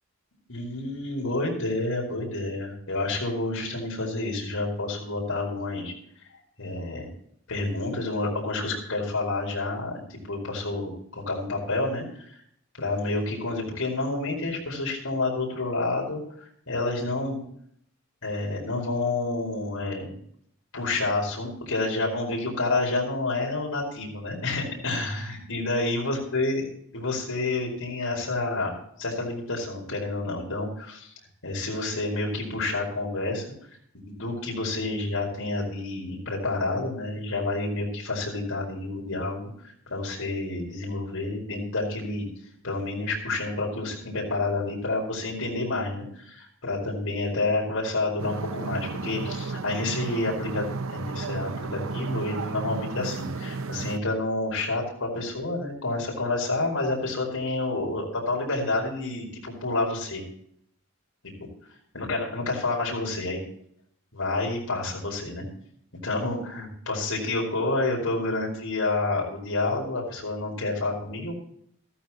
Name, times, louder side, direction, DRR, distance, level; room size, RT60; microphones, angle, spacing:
voice 1, 0.5-5.9 6.6-7.1 7.5-12.3 12.8-17.4 18.2-20.1 20.7-26.6 26.9-31.1 31.4-33.4 33.9-39.5 39.9-42.3 42.6-50.7 50.9-60.2 61.9-63.4 64.1-65.5 66.0-71.4, left 2 dB, 75° left, -1 dB, 4.8 m, -29 dB
sound 1, 48.2-54.0, right 4 dB, 70° right, 0.8 m, -33 dB
14.5 x 14.0 x 3.0 m, 0.66 s
head